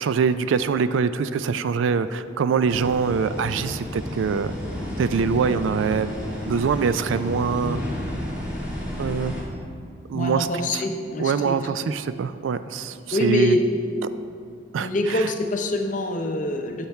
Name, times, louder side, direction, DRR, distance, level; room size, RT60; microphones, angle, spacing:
voice 1, 0.0-4.5 5.0-6.1 6.4-7.8 9.0-9.3 10.1-10.5 10.7-10.8 11.2-13.6 14.7-15.2, right 6 dB, 75° right, 13 dB, 0.3 m, -24 dB
sound 1, 2.7-9.4, equal, 10° right, 1.8 m, -31 dB
voice 2, 10.1-11.5 13.1-13.6 14.8-16.8, left 1 dB, 40° left, 4 dB, 0.6 m, -25 dB
12.0 x 5.7 x 3.4 m, 2.3 s
head